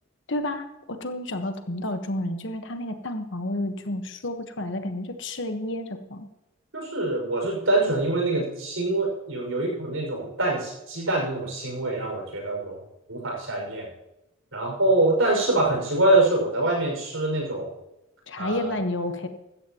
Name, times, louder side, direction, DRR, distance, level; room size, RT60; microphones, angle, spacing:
voice 1, 0.3-6.3 18.3-19.3, left 1 dB, 60° left, 7 dB, 1.3 m, -30 dB
voice 2, 6.7-12.8 13.1-13.9 14.5-17.7 18.4-18.7, right 2 dB, 75° right, 0 dB, 5.9 m, -24 dB
16.0 x 13.5 x 3.0 m, 0.95 s
head